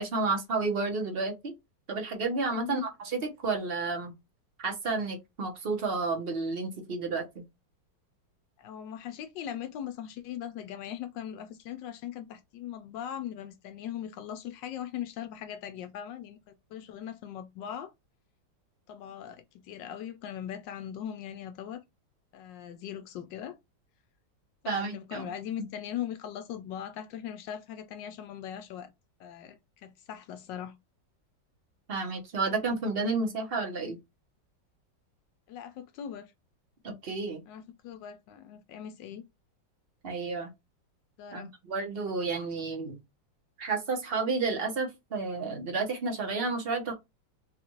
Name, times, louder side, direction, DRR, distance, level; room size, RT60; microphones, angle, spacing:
voice 1, 0.0-1.5 1.9-4.1 4.6-7.4 24.6-25.3 31.9-34.0 36.8-37.4 40.0-40.5 41.3-43.0 43.6-46.9, right 3 dB, 40° right, 1.0 m, -31 dB
voice 2, 2.5-2.9 8.6-17.9 18.9-21.8 22.3-23.6 24.6-28.9 29.2-30.7 35.5-36.3 37.5-39.2 41.2-41.5, left 10 dB, 80° left, 1.2 m, -40 dB
3.9 x 2.4 x 2.9 m
omnidirectional pair, 2.0 m